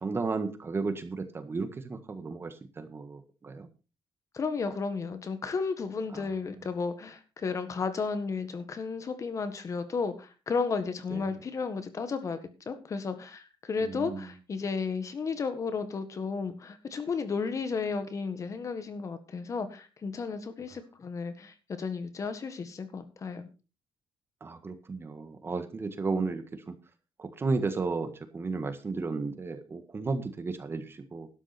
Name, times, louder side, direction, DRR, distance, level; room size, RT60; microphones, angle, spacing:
voice 1, 0.0-3.7 11.1-11.2 13.9-14.2 24.4-26.4 26.7-26.8 27.2-31.3, right 4 dB, 30° right, 9 dB, 1.6 m, -33 dB
voice 2, 4.3-12.4 12.7-23.5, left 5 dB, 40° left, 10 dB, 1.7 m, -33 dB
12.0 x 10.0 x 4.3 m, 0.32 s
cardioid pair, 130°, 9 cm